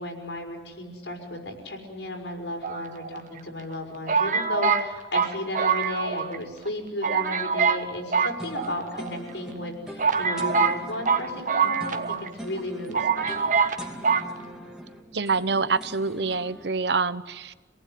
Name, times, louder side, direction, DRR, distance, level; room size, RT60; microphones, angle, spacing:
voice 1, 0.0-13.6, left 1 dB, 80° left, 2 dB, 5.7 m, -34 dB
sound 1, 2.6-3.4 4.1-6.4 6.7-6.8 7.0-7.8 8.1-9.1 9.6-9.7 10.0-12.3 12.6-12.7 12.9-13.8 14.0-14.3, right 5 dB, 45° right, 1.4 m, -24 dB
sound 2, 8.3-16.7, equal, 5° right, 2.5 m, -42 dB
voice 2, 15.1-17.5, right 4 dB, 70° right, 15 dB, 0.9 m, -26 dB
27.5 x 19.0 x 9.5 m, 1.3 s
head